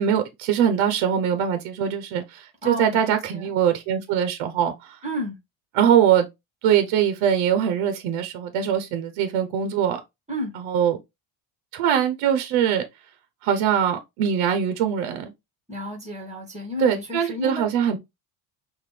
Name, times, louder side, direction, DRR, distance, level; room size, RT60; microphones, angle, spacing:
voice 1, 0.0-5.0 5.7-6.3 6.6-10.0 10.7-11.0 11.7-12.8 13.4-15.3 16.8-18.0, right 9 dB, 70° right, 0.9 m, -22 dB
voice 2, 2.6-3.5 5.0-5.4 10.3-10.5 15.7-17.7, equal, 15° right, 1.8 m, -31 dB
5.8 x 2.6 x 3.2 m
cardioid pair, 135°, 50 cm